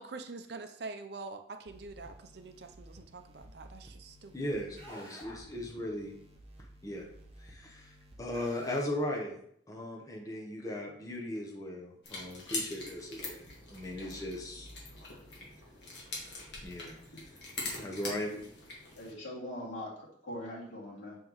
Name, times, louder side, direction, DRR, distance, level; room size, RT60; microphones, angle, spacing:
voice 1, 0.0-4.5, right 3 dB, 55° right, 8 dB, 0.5 m, -45 dB
sound 1, 1.7-8.8, right 1 dB, 30° right, 0.9 m, -55 dB
voice 2, 4.3-6.1 6.8-7.1 7.4-9.4 9.7-14.7 16.6-17.0 17.8-18.3, left 1 dB, 20° left, -1 dB, 0.9 m, -38 dB
sound 2, 12.0-19.1, left 2 dB, 60° left, 1.6 m, -43 dB
voice 3, 19.0-21.2, left 1 dB, 85° left, -5 dB, 2.4 m, -42 dB
5.8 x 5.3 x 3.1 m, 0.67 s
head